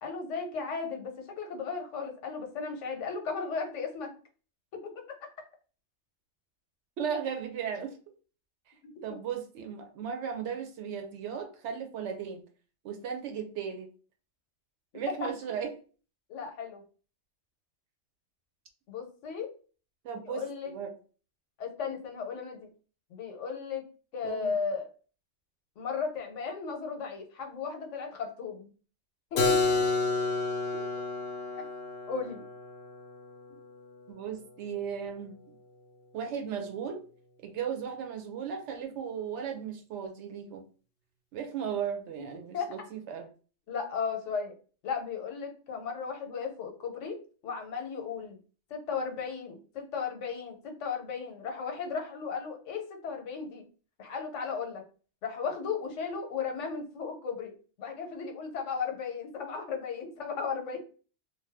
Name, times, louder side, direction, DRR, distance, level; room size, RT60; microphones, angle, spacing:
voice 1, 0.0-4.1 4.7-5.2 8.8-8.9 15.2-15.3 16.3-16.8 18.9-19.5 20.3-20.7 21.6-22.7 23.1-23.8 24.1-24.9 25.8-28.7 29.3-29.6 31.5-31.6 32.1-32.4 42.5-42.7 43.7-44.5 44.8-48.4 48.7-53.6 54.0-54.8 55.2-57.5 57.8-60.9, left 5 dB, 90° left, 3 dB, 1.1 m, -35 dB
voice 2, 7.0-8.0 9.0-12.4 12.8-13.9 14.9-15.7 20.0-20.9 24.2-24.5 30.7-30.8 34.1-35.4 36.1-37.0 37.4-40.6 41.3-43.3, right 7 dB, 75° right, 5 dB, 0.9 m, -36 dB
Keyboard (musical), 29.4-35.0, left 3 dB, 60° left, 0.7 m, -31 dB
2.6 x 2.2 x 3.2 m, 0.38 s
omnidirectional pair, 1.2 m